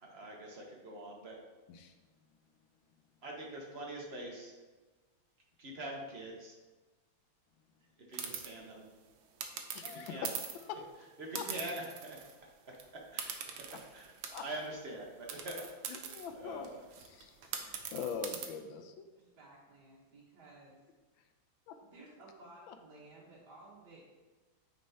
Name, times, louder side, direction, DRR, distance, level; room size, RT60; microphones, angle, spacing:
voice 1, 0.0-1.4 3.2-4.5 5.6-6.5 8.1-8.8 9.9-10.3 11.2-12.2 13.1-16.8, right 1 dB, 45° right, -1 dB, 0.9 m, -44 dB
sound 1, 8.1-8.5 9.4-10.7 11.4-12.4 12.7-12.8 13.2-14.7 15.3-18.5, right 7 dB, 85° right, 1.5 m, -42 dB
voice 2, 9.7-10.3 10.6-10.8 11.3-11.5 13.7-13.8 14.3-14.4 15.9-16.7 17.0-18.8 21.7-21.8 22.7-22.8, left 6 dB, 80° left, 7 dB, 1.4 m, -42 dB
voice 3, 19.2-20.8 21.8-24.0, right 2 dB, 60° right, -6 dB, 1.6 m, -56 dB
9.2 x 4.4 x 2.8 m, 1.3 s
omnidirectional pair, 2.1 m